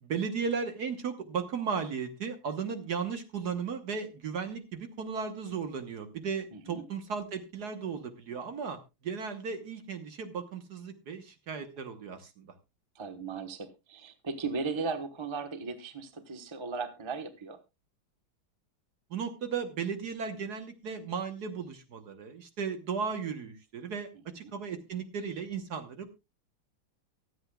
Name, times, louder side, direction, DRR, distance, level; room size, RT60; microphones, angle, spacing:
voice 1, 0.0-12.5 19.1-24.1 24.3-26.1, right 6 dB, 55° right, 8 dB, 1.6 m, -35 dB
voice 2, 6.5-6.8 12.9-17.6 24.4-24.5, right 4 dB, 20° right, 7 dB, 0.9 m, -37 dB
24.0 x 8.0 x 2.3 m, 0.26 s
omnidirectional pair, 2.2 m